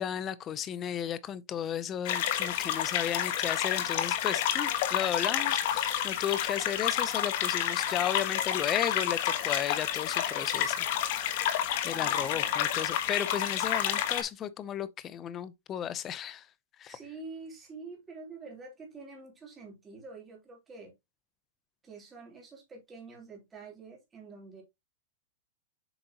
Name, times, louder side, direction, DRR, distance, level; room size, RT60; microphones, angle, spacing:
voice 1, 0.0-16.5 16.8-17.0, left 9 dB, 20° left, 0.7 m, -34 dB
sound 1, 2.1-14.2, left 10 dB, 50° left, 1.3 m, -29 dB
voice 2, 11.9-12.6 16.9-20.9 21.8-24.6, right 3 dB, 15° right, 3.2 m, -47 dB
8.0 x 5.1 x 2.9 m
supercardioid pair, 160°, 0 cm